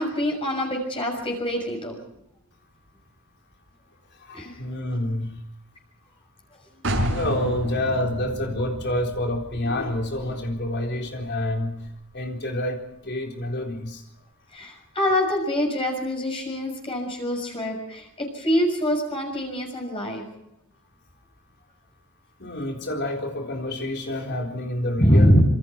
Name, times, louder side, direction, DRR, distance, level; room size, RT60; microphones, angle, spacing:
voice 1, 0.0-2.0 4.3-4.5 14.5-20.2 25.0-25.4, equal, 25° left, 1 dB, 6.4 m, -24 dB
voice 2, 4.1-5.4 7.0-14.1 22.4-25.4, left 1 dB, 50° left, 2 dB, 4.0 m, -28 dB
sound 1, 6.8-12.4, equal, 60° right, 5.6 m, -32 dB
27.0 x 25.0 x 4.5 m, 0.78 s
head